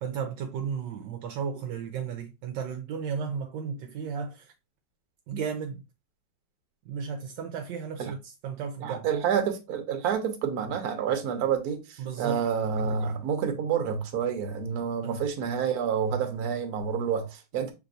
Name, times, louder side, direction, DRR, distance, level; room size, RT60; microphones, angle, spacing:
voice 1, 0.0-4.5 5.3-5.8 6.9-9.1 12.0-12.4 12.8-13.2 15.0-15.2, right 6 dB, 75° right, 1.3 m, -34 dB
voice 2, 8.8-17.7, right 7 dB, 60° right, 1.3 m, -28 dB
5.8 x 3.3 x 2.5 m
omnidirectional pair, 2.0 m